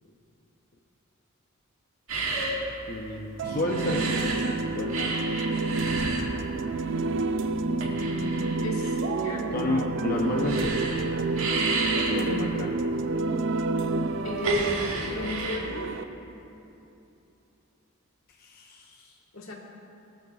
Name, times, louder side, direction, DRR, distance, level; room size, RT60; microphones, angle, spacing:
sound 1, 2.1-4.6 4.9-15.6, right 2 dB, 80° right, 1.8 m, -32 dB
voice 1, 2.9-4.2 4.7-5.2 9.5-10.8 12.0-12.8 18.3-19.1, left 2 dB, 45° left, -1 dB, 0.7 m, -31 dB
sound 2, 3.4-16.0, right 3 dB, 60° right, 0.5 m, -29 dB
voice 2, 7.9-9.7 14.2-15.9 19.3-19.5, left 2 dB, 80° left, -2 dB, 1.9 m, -35 dB
18.0 x 13.0 x 2.4 m, 2.9 s
head